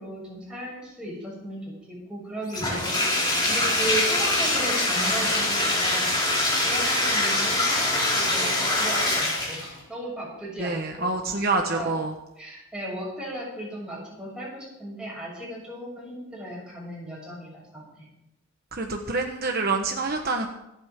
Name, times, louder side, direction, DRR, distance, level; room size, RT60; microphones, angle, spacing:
voice 1, 0.0-6.1 6.6-7.8 8.1-11.1 11.7-11.9 12.4-18.1, right 1 dB, 5° right, -5 dB, 6.6 m, -36 dB
Bathtub (filling or washing), 2.5-9.8, left 1 dB, 20° left, 4.8 m, -24 dB
voice 2, 10.6-12.1 18.7-20.5, right 3 dB, 45° right, 3 dB, 1.2 m, -26 dB
25.5 x 8.8 x 3.7 m, 0.90 s
head